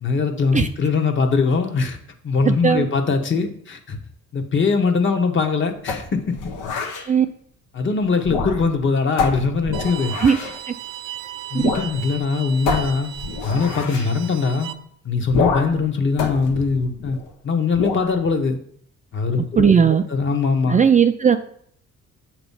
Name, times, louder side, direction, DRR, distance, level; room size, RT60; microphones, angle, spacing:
voice 1, 0.0-2.0 2.2-4.0 4.3-6.4 6.7-6.8 7.7-10.1 11.5-13.1 13.4-14.7 15.0-17.2 17.4-18.6 19.1-19.7 20.1-20.8, left 4 dB, 40° left, 5 dB, 1.1 m, -21 dB
voice 2, 2.4-2.9 7.1-7.3 10.2-10.4 19.4-20.0 20.7-21.4, right 7 dB, 25° right, 8 dB, 0.4 m, -16 dB
sound 1, 5.9-7.1 8.2-8.8 9.2-10.6 11.6-11.9 12.2-12.3 12.7-14.1 15.3-15.8 16.2-17.3 17.7-18.1, left 4 dB, 90° left, 1.0 m, -26 dB
Bowed string instrument, 9.7-14.7, right 11 dB, 85° right, 0.6 m, -36 dB
7.9 x 3.0 x 5.5 m, 0.63 s
cardioid pair, 90°, 30 cm